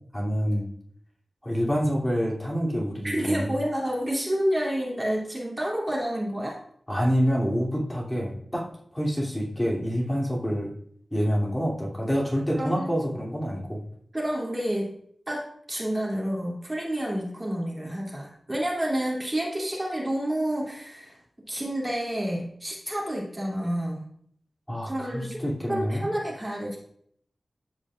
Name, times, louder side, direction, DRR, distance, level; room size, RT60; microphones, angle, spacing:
voice 1, 0.1-0.7 1.4-3.6 6.9-8.7 8.9-10.7 11.1-13.8 24.7-26.1, equal, 10° left, -4 dB, 2.7 m, -27 dB
voice 2, 3.0-6.6 12.5-12.9 14.1-14.9 15.3-15.4 15.7-21.2 21.5-24.0 24.8-25.3 25.7-26.8, right 1 dB, 25° right, -3 dB, 2.6 m, -29 dB
13.0 x 5.1 x 2.5 m, 0.65 s
cardioid pair, 45°, 0 cm